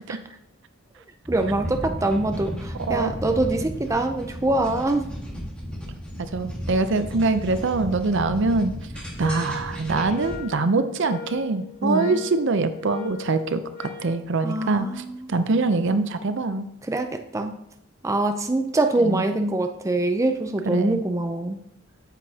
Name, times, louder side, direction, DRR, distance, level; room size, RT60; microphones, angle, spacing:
sound 1, 1.3-10.4, equal, 5° left, 1.6 m, -34 dB
voice 1, 1.3-5.1 11.8-12.2 14.4-15.3 16.8-17.6 18.0-21.6, right 2 dB, 15° right, 5 dB, 0.4 m, -24 dB
voice 2, 2.8-3.1 6.2-8.7 9.2-16.7 19.0-19.2 20.7-21.0, right 3 dB, 60° right, 11 dB, 0.6 m, -24 dB
sound 2, 9.2-14.1, left 5 dB, 45° left, 1.8 m, -40 dB
8.9 x 7.5 x 2.8 m, 0.80 s
head